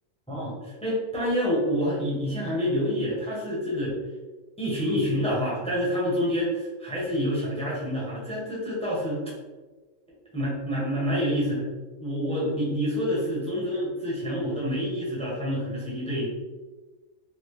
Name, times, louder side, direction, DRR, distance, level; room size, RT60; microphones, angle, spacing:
voice 1, 0.3-4.0 4.6-9.2 10.3-11.7 12.0-16.3, equal, 5° left, -6 dB, 1.0 m, -27 dB
4.0 x 2.4 x 3.2 m, 1.2 s
omnidirectional pair, 1.5 m